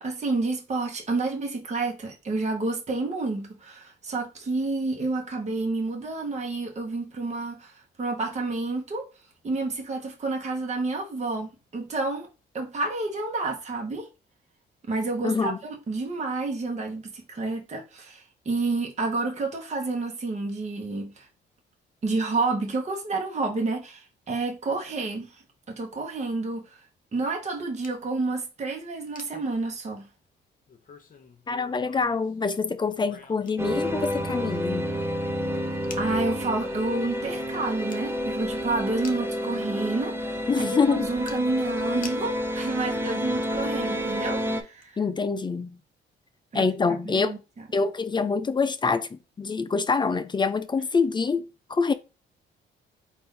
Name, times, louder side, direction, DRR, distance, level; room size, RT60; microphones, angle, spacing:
voice 1, 0.0-9.1 9.4-12.3 12.5-14.1 14.9-21.3 22.0-26.8 27.1-30.1 36.0-45.0 46.5-46.6 47.0-47.4, right 3 dB, 35° right, 1.1 m, -29 dB
voice 2, 15.2-15.6 31.5-34.9 40.5-41.1 45.0-45.8 46.5-47.4 47.7-51.9, left 4 dB, 25° left, 0.5 m, -25 dB
sound 1, 27.3-28.0 28.7-28.8 29.0-30.1 30.7-32.4 32.8-36.5 36.9-37.0 37.3-38.1 38.4-38.5 39.0-39.5 40.1-40.2 40.6-42.6 43.0-43.7 44.0-44.2 44.8-44.9, left 5 dB, 45° left, 0.8 m, -48 dB
sound 2, 33.6-44.6, equal, 10° right, 0.7 m, -29 dB
4.1 x 2.6 x 3.7 m
cardioid pair, 90°, 20 cm